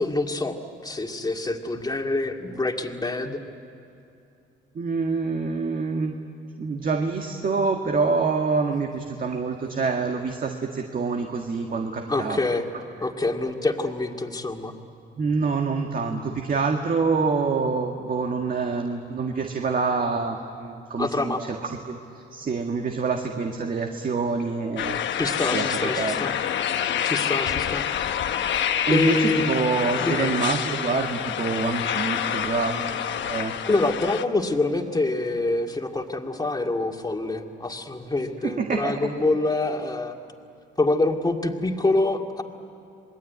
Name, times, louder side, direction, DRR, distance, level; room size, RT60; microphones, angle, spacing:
voice 1, 0.0-3.4 12.1-12.7 13.0-14.7 21.0-21.4 25.2-26.3 27.1-27.9 28.9-29.7 30.0-30.3 33.6-40.2 40.8-42.4, left 2 dB, 20° left, 3 dB, 2.2 m, -26 dB
voice 2, 4.8-6.1 6.6-12.4 15.2-21.3 21.9-22.0 22.3-25.0 25.5-26.1 28.9-33.5 38.4-39.0, right 4 dB, 45° right, 3 dB, 1.8 m, -26 dB
sound 1, 24.8-34.2, left 9 dB, 70° left, 1.1 m, -27 dB
27.0 x 21.0 x 9.5 m, 2.6 s
cardioid pair, 90°, 20 cm